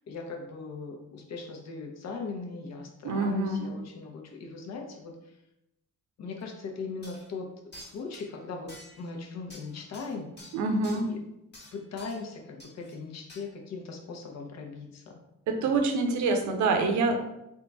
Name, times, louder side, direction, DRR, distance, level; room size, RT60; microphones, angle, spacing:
voice 1, 0.0-5.4 6.2-10.3 10.9-11.2 11.7-15.2 15.8-15.9, left 4 dB, 60° left, 2 dB, 0.8 m, -39 dB
voice 2, 3.0-3.8 10.5-11.1 15.5-17.2, right 3 dB, 75° right, 4 dB, 0.7 m, -26 dB
sound 1, 6.4-6.5 7.0-7.3 7.7-8.2 8.7-9.1 9.5-11.0 11.5-12.3 12.6-13.0 13.3-13.4, left 1 dB, 35° left, 1.3 m, -49 dB
3.7 x 2.4 x 4.0 m, 0.85 s
cardioid pair, 90°, 30 cm